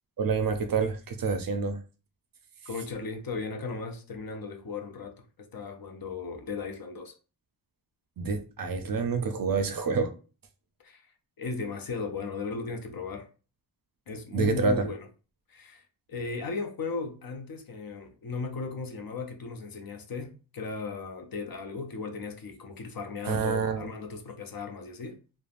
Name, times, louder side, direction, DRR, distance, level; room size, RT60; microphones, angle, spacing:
voice 1, 0.2-1.8 8.2-10.1 14.3-14.9 23.2-23.9, right 4 dB, 50° right, 0.5 m, -27 dB
voice 2, 2.6-7.1 10.8-11.1 11.4-13.3 14.1-15.1 15.5-25.2, left 4 dB, 50° left, 0.6 m, -36 dB
3.2 x 2.0 x 2.4 m
wide cardioid pair, 85°, 47 cm